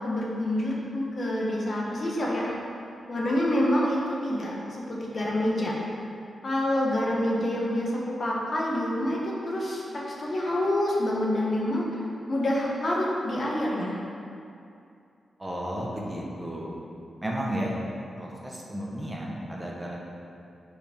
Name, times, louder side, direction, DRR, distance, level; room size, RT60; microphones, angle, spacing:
voice 1, 0.0-2.5 3.1-5.7 6.4-12.0 12.3-14.0, left 1 dB, 45° left, -3 dB, 1.2 m, -27 dB
voice 2, 15.4-16.7 17.2-17.8 18.1-20.0, equal, 15° right, -3 dB, 1.0 m, -33 dB
5.1 x 5.0 x 5.1 m, 2.5 s
cardioid pair, 90°, 0 cm